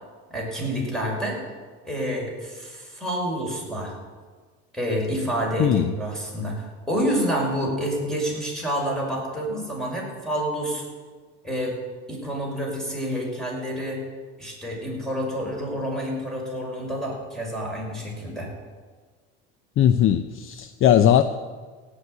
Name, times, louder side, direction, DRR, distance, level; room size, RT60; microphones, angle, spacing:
voice 1, 0.3-1.4 1.8-3.9 4.7-10.8 11.4-11.7 12.1-14.0 14.4-18.5, equal, ahead, -2 dB, 6.1 m, -28 dB
voice 2, 5.6-6.0 19.8-21.2, left 10 dB, 45° left, 10 dB, 0.7 m, -19 dB
17.0 x 6.6 x 9.4 m, 1.5 s
supercardioid pair, 110°, 30 cm